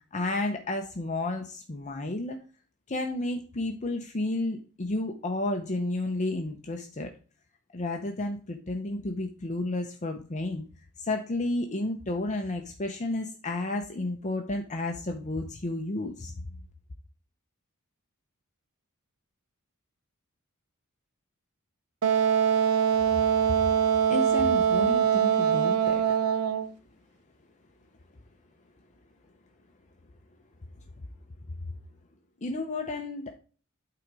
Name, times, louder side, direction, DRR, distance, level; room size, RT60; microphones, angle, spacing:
voice 1, 0.1-2.4 2.9-7.1 7.7-10.7 11.0-16.3 23.1-23.7 24.1-26.0 31.6-31.7 32.4-33.4, left 2 dB, 35° left, 4 dB, 0.7 m, -32 dB
Wind instrument woodwind instrument, 22.0-26.7, right 8 dB, 90° right, 0.6 m, -23 dB
9.1 x 3.9 x 4.6 m, 0.38 s
head